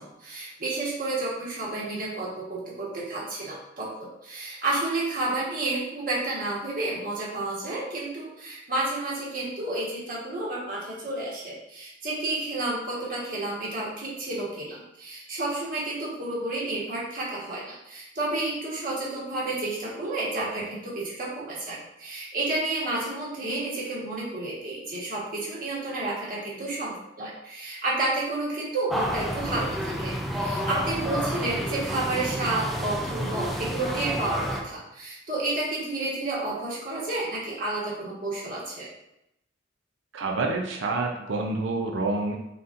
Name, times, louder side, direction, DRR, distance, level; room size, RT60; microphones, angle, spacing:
voice 1, 0.0-30.1 30.4-38.9, right 2 dB, 45° right, -6 dB, 1.4 m, -31 dB
sound 1, 28.9-34.6, equal, ahead, 0.4 m, -30 dB
voice 2, 40.1-42.4, right 3 dB, 75° right, 2 dB, 0.5 m, -28 dB
4.1 x 4.0 x 2.5 m, 0.85 s
head